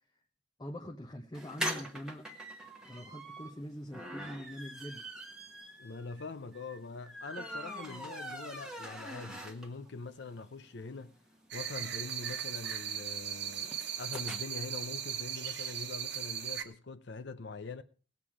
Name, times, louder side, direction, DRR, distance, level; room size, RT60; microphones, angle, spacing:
voice 1, 0.6-2.3 2.8-5.1, equal, 20° left, 0.8 m, -43 dB
sound 1, 1.3-9.9 10.3-10.4 10.6-10.7 11.0-14.4, equal, 5° right, 1.3 m, -43 dB
voice 2, 5.8-11.1 11.5-17.8, left 4 dB, 55° left, 0.6 m, -43 dB
sound 2, 11.5-16.6, right 9 dB, 55° right, 1.1 m, -38 dB
18.5 x 7.5 x 4.9 m
head